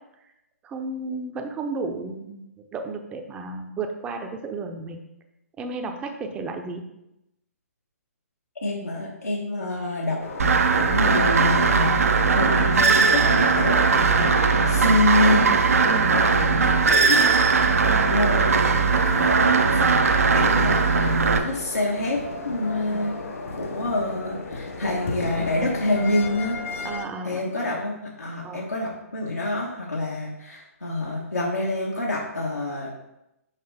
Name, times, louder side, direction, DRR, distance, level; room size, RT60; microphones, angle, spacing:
voice 1, 0.6-2.5 2.7-5.0 5.6-6.9 9.6-9.8 15.9-16.2 17.8-18.1 22.9-23.0 26.8-27.8 28.4-28.7, right 3 dB, 15° right, 5 dB, 0.6 m, -33 dB
voice 2, 8.6-10.2 10.8-14.3 14.7-15.6 16.1-16.5 16.9-17.3 18.1-19.9 20.3-23.1 23.6-26.6 27.2-32.9, left 2 dB, 85° left, -3 dB, 1.1 m, -27 dB
sound 1, 10.2-27.1, left 3 dB, 60° left, 1.0 m, -35 dB
sound 2, 10.4-21.4, right 4 dB, 70° right, 0.6 m, -19 dB
5.7 x 5.1 x 3.4 m, 0.88 s
figure-of-eight pair, 130°, 8 cm